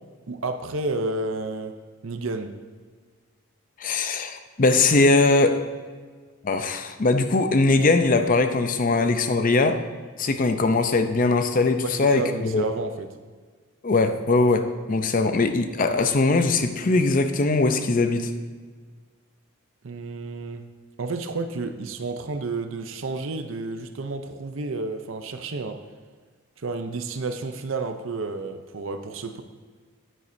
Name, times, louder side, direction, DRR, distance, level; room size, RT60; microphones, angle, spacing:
voice 1, 0.3-1.7 2.0-2.6 11.8-13.1 19.8-20.6 21.0-25.8 26.6-29.4, right 3 dB, 65° right, 8 dB, 0.6 m, -31 dB
voice 2, 3.8-5.6 6.4-9.8 10.2-12.6 13.8-18.3, left 3 dB, 40° left, 8 dB, 0.6 m, -21 dB
10.0 x 9.2 x 2.7 m, 1.5 s
head